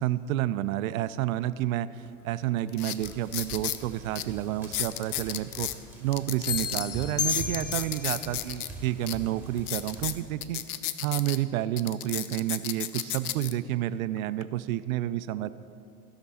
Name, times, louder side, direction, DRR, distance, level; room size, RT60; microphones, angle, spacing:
voice 1, 0.0-1.9 2.2-5.7 6.0-10.6 11.0-15.5, right 13 dB, 70° right, 15 dB, 0.5 m, -30 dB
sound 1, 2.0-2.1 2.7-3.8 4.1-4.2 4.6-5.8 6.1-8.7 9.1-9.2 9.6-11.4 11.8-13.5 14.2-14.4, left 12 dB, 80° left, 0.6 m, -33 dB
sound 2, 3.0-10.1, right 3 dB, 5° right, 2.2 m, -44 dB
sound 3, 6.5-8.1, left 7 dB, 35° left, 0.8 m, -31 dB
15.5 x 6.0 x 4.2 m, 2.5 s
hypercardioid pair, 85°, 44 cm